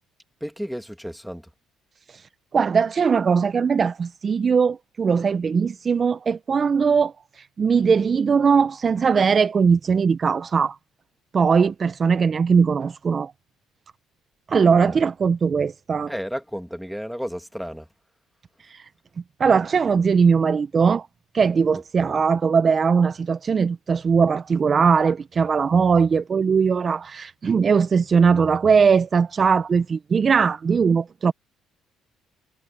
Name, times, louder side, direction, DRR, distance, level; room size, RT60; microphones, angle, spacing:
voice 1, 0.4-1.5 14.8-14.9 16.1-17.9 22.0-22.1, equal, ahead, 2.3 m, -32 dB
voice 2, 2.5-10.8 11.3-13.3 14.5-16.1 18.7-18.8 19.4-21.1 21.3-31.3, right 5 dB, 40° right, 0.9 m, -20 dB
supercardioid pair, 70°, 0 cm